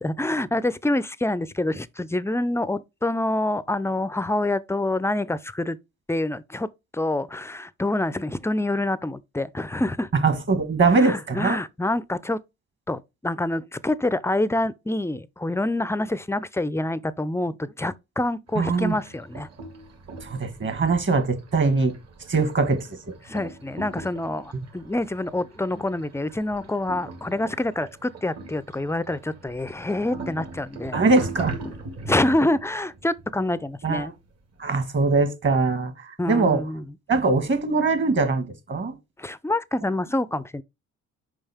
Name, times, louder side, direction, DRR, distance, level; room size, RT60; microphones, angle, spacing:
voice 1, 0.0-5.8 6.1-10.1 10.9-12.4 12.9-19.5 23.2-31.0 32.0-34.1 36.2-36.8 39.2-40.6, left 1 dB, 10° left, 0.4 m, -26 dB
voice 2, 10.2-11.6 18.5-18.9 20.2-21.9 22.3-23.1 30.9-31.5 33.8-34.1 34.6-36.6 37.1-38.9, right 3 dB, 40° right, 1.6 m, -22 dB
sound 1, 18.5-34.6, right 3 dB, 55° right, 2.0 m, -40 dB
5.4 x 5.2 x 3.5 m
cardioid pair, 90°, 30 cm